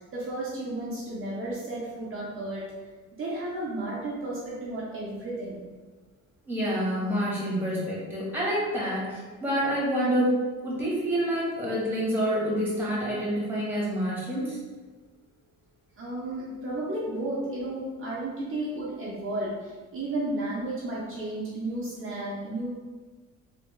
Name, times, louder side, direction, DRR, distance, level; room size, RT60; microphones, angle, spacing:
voice 1, 0.1-2.6 3.2-5.6 16.0-19.5 19.9-22.7, right 1 dB, 40° right, -7 dB, 0.8 m, -33 dB
voice 2, 6.5-10.3 10.6-14.6, equal, 5° right, -6 dB, 1.3 m, -27 dB
3.3 x 2.6 x 3.1 m, 1.4 s
cardioid pair, 105°, 32 cm